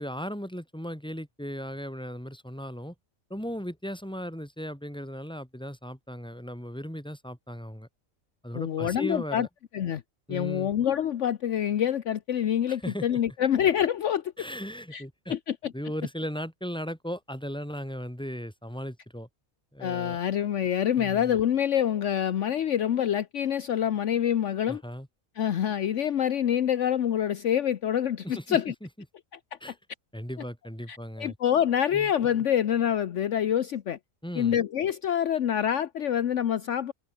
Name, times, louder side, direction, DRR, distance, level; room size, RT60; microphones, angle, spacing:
voice 1, 0.0-2.9 3.3-7.9 8.4-9.5 10.3-10.7 12.7-13.2 14.4-15.4 15.7-19.3 19.7-20.2 20.9-21.4 24.7-25.1 28.2-28.9 29.6-29.8 30.1-31.4 31.9-32.1 34.2-34.6, equal, 5° left, 5.2 m, -37 dB
voice 2, 8.5-9.5 9.7-10.0 10.3-14.3 14.9-15.0 15.3-15.7 19.8-24.8 25.4-28.7 30.9-34.0 34.4-36.9, left 9 dB, 65° left, 1.1 m, -26 dB
omnidirectional pair, 1.4 m